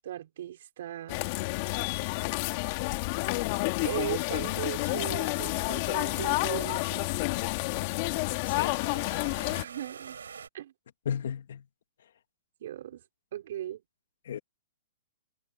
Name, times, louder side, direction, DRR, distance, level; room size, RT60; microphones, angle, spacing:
voice 1, 0.0-1.3 3.8-7.1 9.5-10.2 10.5-10.7 12.6-13.0 13.3-13.8, right 12 dB, 65° right, 4.5 m, -38 dB
sound 1, 1.1-9.6, left 24 dB, 45° left, 2.1 m, -30 dB
sound 2, 4.3-10.5, right 6 dB, 90° right, 7.9 m, -49 dB
voice 2, 8.5-8.8 11.1-11.6 14.3-14.4, left 8 dB, 70° left, 2.1 m, -34 dB
hypercardioid pair, 140°, 0 cm